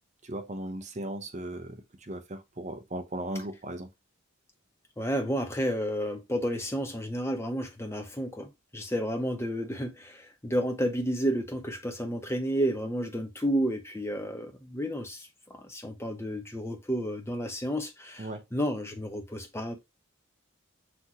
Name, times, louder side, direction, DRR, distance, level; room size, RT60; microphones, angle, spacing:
voice 1, 0.2-3.9 18.2-18.5, right 1 dB, 35° right, 0.7 m, -37 dB
voice 2, 5.0-18.3 18.5-19.8, equal, 10° left, 0.8 m, -31 dB
6.0 x 3.0 x 2.8 m
head